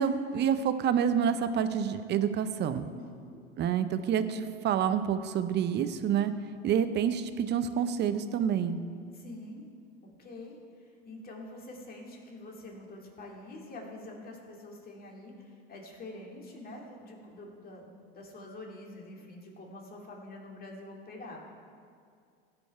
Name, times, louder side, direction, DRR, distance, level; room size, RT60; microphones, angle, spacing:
voice 1, 0.0-2.9 3.6-6.3 6.6-8.8, right 8 dB, 35° right, 11 dB, 0.6 m, -28 dB
voice 2, 3.0-3.4 9.1-9.6 10.0-21.4, left 2 dB, 30° left, -1 dB, 2.3 m, -46 dB
16.0 x 5.3 x 4.7 m, 2.2 s
hypercardioid pair, 100°, 30 cm